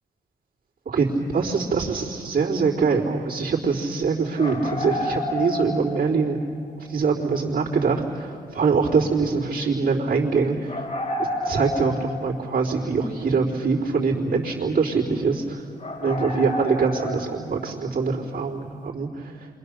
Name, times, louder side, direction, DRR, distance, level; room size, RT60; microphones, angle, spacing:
voice 1, 0.9-6.4 6.8-10.9 11.2-15.7 16.0-19.5, right 4 dB, 55° right, -6 dB, 3.9 m, -24 dB
sound 1, 4.4-6.4 6.7-6.8 10.7-12.6 13.0-13.1 14.1-14.2 14.6-14.7 15.2-15.4 15.8-17.7, left 1 dB, 45° left, 6.5 m, -30 dB
27.5 x 24.0 x 6.7 m, 2.2 s
supercardioid pair, 45°, 17 cm